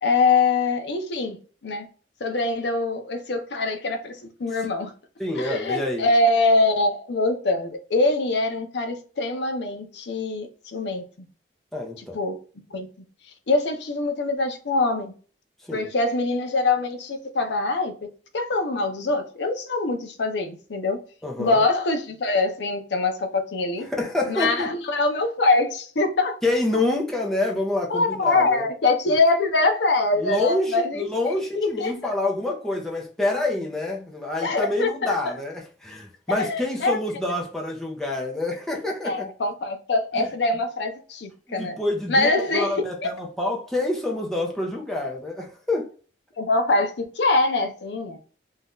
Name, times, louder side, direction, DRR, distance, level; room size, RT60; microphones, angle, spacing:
voice 1, 0.0-1.9 2.2-4.9 5.4-11.0 12.1-12.4 12.7-12.9 13.5-15.1 15.7-17.9 18.3-21.0 21.4-23.9 24.3-26.4 27.9-31.1 31.6-31.9 34.4-35.2 36.3-37.0 39.0-41.8 42.1-42.8 46.4-48.2, left 3 dB, 70° left, 0.5 m, -23 dB
voice 2, 5.2-6.1 11.7-12.2 15.6-15.9 21.2-21.6 23.8-24.7 26.4-28.7 29.1-29.2 30.2-39.3 40.1-40.3 41.5-45.9, left 2 dB, ahead, 0.6 m, -27 dB
2.6 x 2.3 x 3.5 m
head